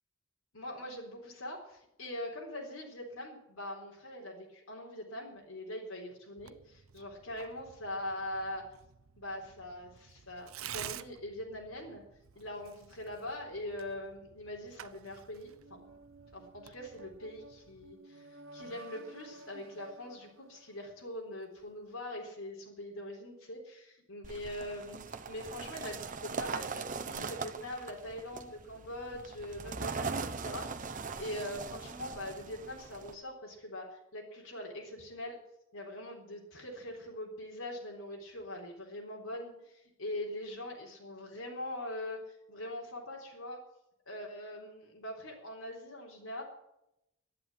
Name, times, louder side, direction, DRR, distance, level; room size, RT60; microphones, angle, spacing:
voice 1, 0.5-8.6 9.2-12.0 12.3-15.9 16.3-35.4 35.7-43.6 44.1-46.4, left 1 dB, 85° left, -2 dB, 3.9 m, -42 dB
Tearing, 6.4-17.9, right 10 dB, 85° right, 0.7 m, -51 dB
sound 1, 15.6-21.4, right 2 dB, 70° right, 1.1 m, -53 dB
sound 2, 24.2-33.1, right 4 dB, 40° right, 0.9 m, -40 dB
12.5 x 11.0 x 9.2 m, 0.85 s
head